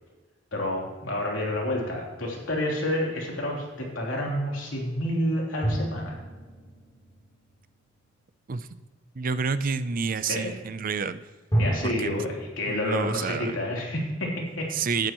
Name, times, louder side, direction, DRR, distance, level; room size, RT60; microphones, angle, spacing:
voice 1, 0.5-6.2 10.3-10.5 11.6-14.7, left 1 dB, 75° left, -2 dB, 3.3 m, -29 dB
sound 1, 5.6-8.2 11.5-12.5, right 1 dB, 20° left, 3.1 m, -31 dB
voice 2, 8.5-8.8 9.2-11.2 11.8-12.1 12.7-13.6 14.7-15.1, right 5 dB, 45° right, 13 dB, 0.5 m, -29 dB
18.0 x 9.1 x 3.0 m, 1.3 s
head